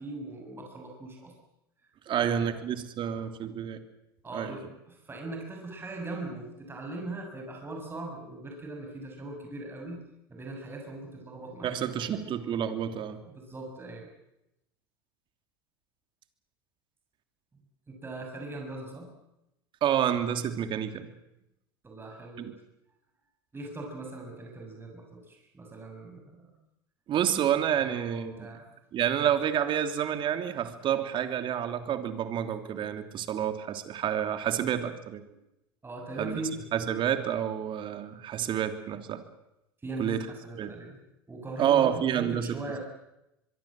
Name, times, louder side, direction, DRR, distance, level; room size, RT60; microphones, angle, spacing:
voice 1, 0.0-1.3 2.2-2.5 4.2-10.0 10.3-12.3 13.3-14.1 17.9-19.1 21.8-22.5 23.5-26.5 27.8-28.6 35.8-36.6 39.8-41.0 41.3-42.8, right 2 dB, 20° right, 1 dB, 7.3 m, -40 dB
voice 2, 2.1-3.8 4.3-4.6 11.6-13.2 19.8-21.1 22.4-22.5 27.1-28.5 28.9-35.2 36.2-36.4 36.7-39.2 40.0-40.3 40.6-40.8 41.6-42.6, right 9 dB, 40° right, 8 dB, 3.1 m, -29 dB
24.0 x 23.0 x 7.7 m, 0.88 s
hypercardioid pair, 85°, 12 cm